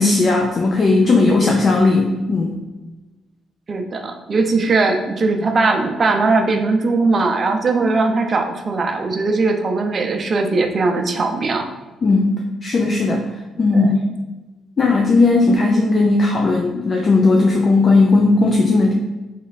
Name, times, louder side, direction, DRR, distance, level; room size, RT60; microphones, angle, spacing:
voice 1, 0.0-2.5 12.0-13.3 13.6-13.9 14.8-18.9, left 3 dB, 40° left, 0 dB, 0.6 m, -16 dB
voice 2, 3.7-11.7 13.7-14.0, right 3 dB, 40° right, 4 dB, 0.6 m, -19 dB
3.7 x 3.2 x 4.0 m, 1.2 s
cardioid pair, 90°, 0 cm